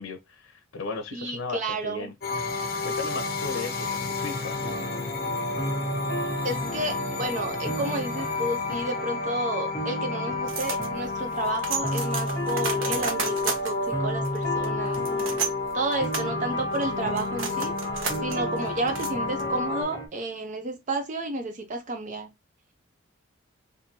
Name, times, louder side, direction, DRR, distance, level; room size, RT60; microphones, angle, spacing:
voice 1, 0.0-2.1 2.8-4.7, left 3 dB, 80° left, 0.7 m, -36 dB
voice 2, 1.1-2.1 6.4-15.4 15.7-17.7 18.2-22.3, right 2 dB, 40° right, 0.5 m, -31 dB
sound 1, 2.2-19.8, left 3 dB, 50° left, 0.9 m, -31 dB
sound 2, 4.6-20.1, equal, 15° left, 0.9 m, -35 dB
sound 3, 10.5-19.7, right 5 dB, 80° right, 0.9 m, -34 dB
3.6 x 2.6 x 2.7 m
head